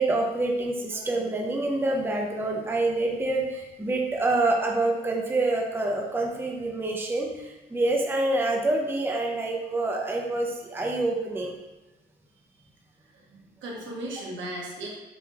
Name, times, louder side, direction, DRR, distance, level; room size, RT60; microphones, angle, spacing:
voice 1, 0.0-11.6, right 2 dB, 10° right, 0 dB, 0.6 m, -27 dB
voice 2, 13.1-14.9, right 1 dB, 70° right, -2 dB, 1.2 m, -36 dB
6.7 x 2.9 x 2.4 m, 1.0 s
cardioid pair, 90°, 20 cm